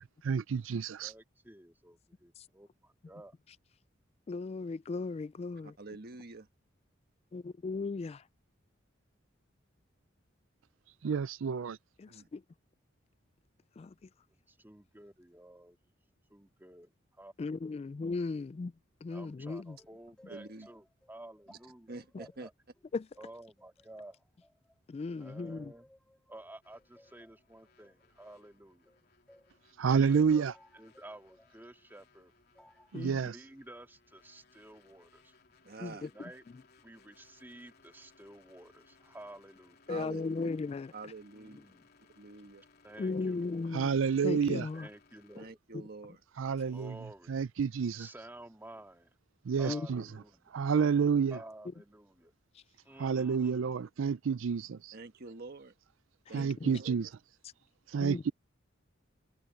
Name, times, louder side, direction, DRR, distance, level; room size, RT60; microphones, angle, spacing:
voice 1, 0.0-1.1 11.0-11.8 29.8-30.5 32.9-33.4 43.7-44.7 46.4-47.0 47.3-48.1 49.5-50.1 50.5-51.4 53.0-54.9 56.3-57.1 57.9-58.3, right 6 dB, 85° right, 0.4 m, -29 dB
voice 2, 1.0-3.4 14.5-15.9 16.3-17.3 19.1-22.5 23.2-24.2 25.2-25.9 26.3-28.9 29.8-30.4 30.7-32.3 32.9-35.3 35.9-36.4 36.8-39.8 41.3-41.9 42.8-43.7 44.7-45.6 46.7-47.4 47.9-49.1 49.6-50.5 51.3-52.3 52.8-53.7, right 1 dB, 10° right, 2.0 m, -52 dB
voice 3, 4.3-5.7 7.3-8.2 12.0-12.4 13.8-13.9 17.4-18.7 19.0-19.8 22.9-23.1 24.9-25.7 32.9-33.2 35.8-36.1 39.9-40.9 43.0-43.9 44.2-44.9 49.7-49.9 56.3-56.7 58.0-58.3, left 3 dB, 30° left, 0.3 m, -36 dB
voice 4, 5.6-6.5 12.1-12.3 20.3-20.7 21.5-21.6 21.9-22.5 35.6-36.1 39.9-40.5 40.9-41.6 42.2-42.6 45.3-46.2 54.9-55.7 56.3-56.9, right 3 dB, 55° right, 1.4 m, -47 dB
sound 1, 19.8-24.8 25.2-29.6 30.1-31.6 32.6-33.0, left 1 dB, 5° left, 2.2 m, -62 dB
sound 2, 26.6-45.5, left 4 dB, 55° left, 3.4 m, -65 dB
head